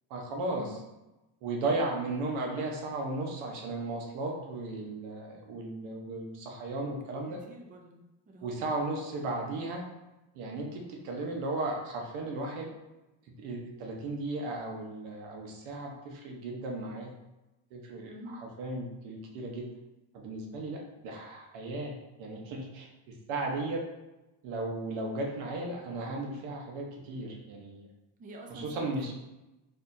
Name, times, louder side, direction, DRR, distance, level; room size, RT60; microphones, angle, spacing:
voice 1, 0.1-0.7 1.4-7.4 8.4-9.9 10.3-12.7 13.4-17.1 17.7-19.7 20.1-23.8 24.4-27.9 28.5-29.1, right 2 dB, 90° right, 0 dB, 1.0 m, -35 dB
voice 2, 7.5-8.5 18.1-18.4 28.2-29.1, right 1 dB, 20° right, 1 dB, 0.3 m, -47 dB
4.3 x 2.8 x 2.6 m, 1.0 s
cardioid pair, 150°, 46 cm